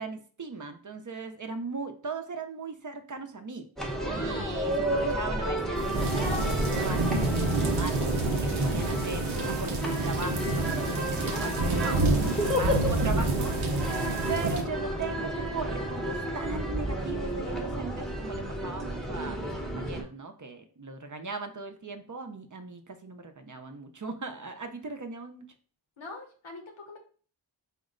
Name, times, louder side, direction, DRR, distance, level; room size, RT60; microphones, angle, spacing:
voice 1, 0.0-3.7 4.1-25.5, right 4 dB, 40° right, 6 dB, 0.6 m, -39 dB
sound 1, 3.8-20.0, right 1 dB, ahead, 0.7 m, -31 dB
sound 2, 5.7-13.6, left 5 dB, 40° left, 0.4 m, -45 dB
sound 3, 6.0-14.6, right 2 dB, 90° right, 0.7 m, -29 dB
voice 2, 26.0-27.0, left 3 dB, 85° left, 3 dB, 0.9 m, -43 dB
4.3 x 2.1 x 3.7 m, 0.42 s
wide cardioid pair, 55°, 46 cm